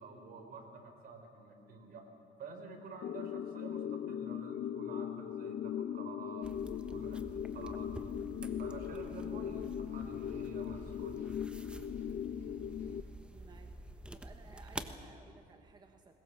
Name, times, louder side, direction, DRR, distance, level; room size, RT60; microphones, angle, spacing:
voice 1, 0.0-2.0 2.4-8.1 8.6-11.3, right 3 dB, 60° right, 4 dB, 4.2 m, -49 dB
sound 1, 3.0-13.0, left 9 dB, 50° left, 0.6 m, -39 dB
sound 2, 6.4-15.0, right 1 dB, 5° right, 1.2 m, -48 dB
sound 3, 8.3-13.5, right 2 dB, 45° right, 7.4 m, -67 dB
voice 2, 13.3-16.2, right 3 dB, 25° right, 5 dB, 1.3 m, -59 dB
21.0 x 21.0 x 7.3 m, 2.6 s
cardioid pair, 110°, 17 cm